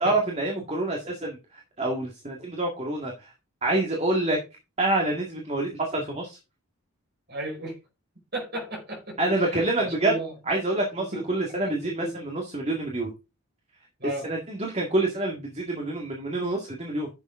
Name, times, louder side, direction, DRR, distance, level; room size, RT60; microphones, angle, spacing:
voice 1, 0.0-3.3 3.6-4.4 4.8-6.4 9.2-10.1 10.5-13.1 14.2-17.1, right 2 dB, 30° right, 1.9 m, -27 dB
voice 2, 7.3-7.8 8.3-10.3 11.1-11.2 11.6-12.1 12.7-12.8 14.0-14.3, right 1 dB, 45° right, 5.0 m, -34 dB
10.5 x 7.2 x 3.7 m
head